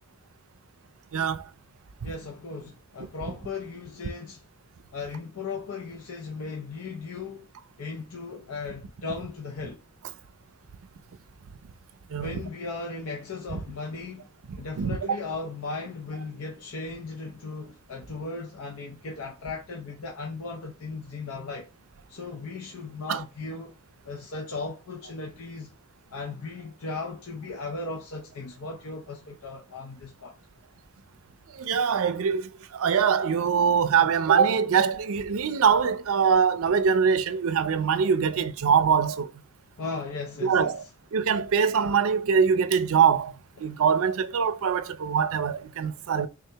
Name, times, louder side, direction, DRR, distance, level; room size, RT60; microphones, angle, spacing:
voice 1, 1.1-1.4 12.1-12.3 13.5-13.6 14.5-15.0 23.1-23.2 31.6-39.3 40.4-40.8 41.1-43.3 43.6-46.3, right 6 dB, 65° right, 0.5 m, -23 dB
voice 2, 2.0-4.4 4.9-7.5 7.8-9.8 12.2-14.3 14.6-21.7 22.1-23.7 24.0-25.7 26.1-30.4 39.8-40.9, left 4 dB, 70° left, 0.7 m, -37 dB
3.5 x 2.8 x 3.3 m
head